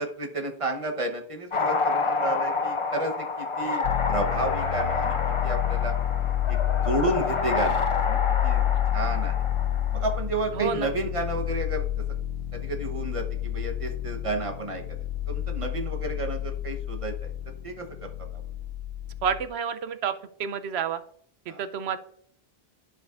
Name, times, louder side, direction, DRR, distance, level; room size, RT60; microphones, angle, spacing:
voice 1, 0.0-5.2 5.4-6.0 6.5-6.6 6.8-8.6 8.9-9.4 9.9-11.9 12.5-14.8 15.3-17.3 17.6-18.1 21.5-21.6, right 2 dB, 35° right, 3 dB, 1.0 m, -31 dB
sound 1, 1.5-10.2, left 4 dB, 35° left, 0.6 m, -28 dB
sound 2, 3.8-19.5, left 11 dB, 85° left, 0.9 m, -29 dB
voice 2, 10.5-10.9 19.2-20.1 20.4-21.0 21.5-22.0, right 7 dB, 85° right, 11 dB, 0.9 m, -29 dB
12.0 x 5.1 x 2.5 m, 0.65 s
omnidirectional pair, 1.1 m